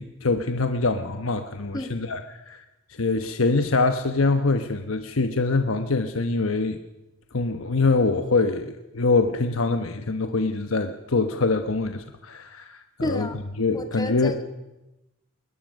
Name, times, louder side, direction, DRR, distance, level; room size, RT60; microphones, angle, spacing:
voice 1, 0.0-2.6 3.0-6.8 7.3-14.4, left 3 dB, 90° left, 7 dB, 1.1 m, -24 dB
voice 2, 13.0-13.3 13.7-14.4, left 1 dB, 20° left, 6 dB, 1.9 m, -30 dB
21.5 x 20.0 x 6.4 m, 0.98 s
head